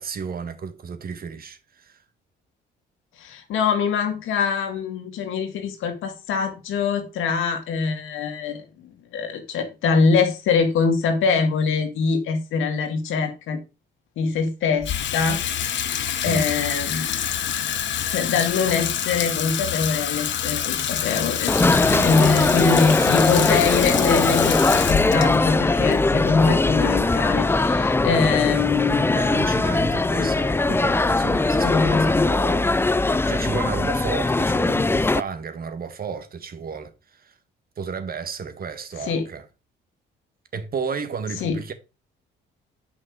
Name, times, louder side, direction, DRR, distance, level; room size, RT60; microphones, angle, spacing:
voice 1, 0.0-2.0 16.2-16.5 21.9-22.6 29.1-37.3 37.8-39.4 40.5-41.7, right 6 dB, 50° right, 1.6 m, -33 dB
voice 2, 3.2-13.6 14.2-15.4 16.2-17.3 18.1-21.6 22.0-29.2 30.1-30.3 31.6-32.3 39.1-39.2 41.4-41.7, left 5 dB, 85° left, 2.0 m, -23 dB
Water tap faucet / Sink (filling or washing), 14.8-27.2, left 9 dB, 65° left, 1.1 m, -27 dB
sound 1, 21.5-35.2, left 2 dB, 10° left, 0.4 m, -21 dB
9.0 x 5.5 x 4.7 m
cardioid pair, 90°, 20 cm